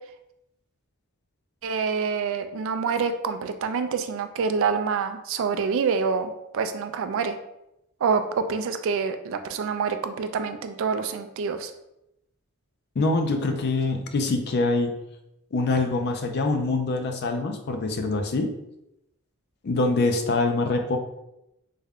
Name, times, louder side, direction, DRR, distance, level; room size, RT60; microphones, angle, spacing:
voice 1, 1.6-7.4 8.0-11.7, right 5 dB, 60° right, 8 dB, 0.3 m, -26 dB
voice 2, 13.0-14.9 15.5-18.5 19.6-21.0, left 3 dB, 45° left, 5 dB, 0.4 m, -24 dB
3.5 x 2.2 x 3.5 m, 0.86 s
head